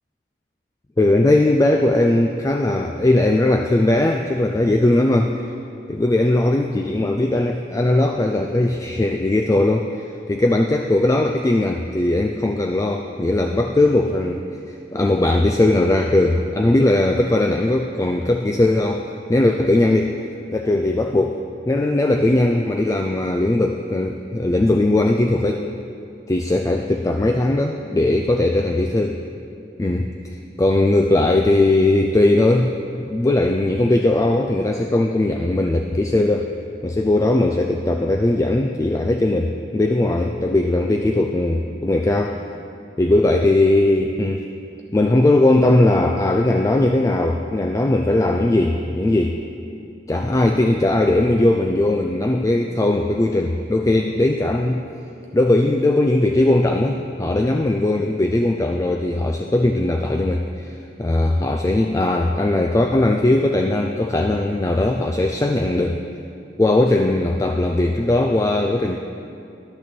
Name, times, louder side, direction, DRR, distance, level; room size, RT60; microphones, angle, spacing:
voice 1, 1.0-5.3 5.9-20.2 20.5-25.7 26.3-29.2 29.8-36.5 36.8-42.4 43.0-44.5 44.9-49.3 50.1-54.8 55.3-66.0 66.6-69.0, left 2 dB, 15° left, 3 dB, 0.3 m, -19 dB
10.5 x 6.5 x 6.0 m, 2.6 s
head